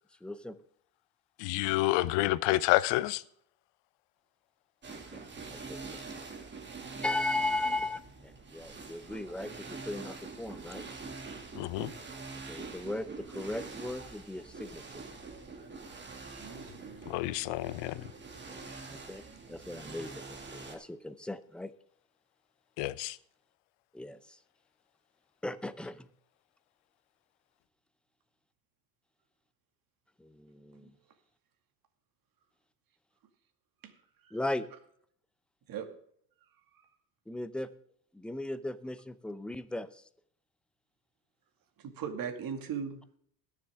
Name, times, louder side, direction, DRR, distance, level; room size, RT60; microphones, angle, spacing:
voice 1, 0.2-0.5 4.9-6.0 7.0-10.8 12.5-15.0 18.5-18.6 18.9-21.7 23.9-24.4 25.4-26.1 30.2-30.9 34.3-34.7 37.3-37.7 38.1-40.0, left 2 dB, ahead, 12 dB, 0.6 m, -37 dB
voice 2, 1.4-3.2 11.6-11.9 17.1-18.0 22.8-23.2, left 18 dB, 60° left, 18 dB, 0.9 m, -29 dB
sound 1, 4.8-20.8, right 4 dB, 20° right, 2.4 m, -45 dB
voice 3, 16.4-17.1 33.8-33.9 34.2-34.4 35.7-35.9 41.8-43.2, right 7 dB, 45° right, 5 dB, 2.3 m, -39 dB
20.5 x 7.3 x 3.6 m, 0.65 s
supercardioid pair, 105°, 49 cm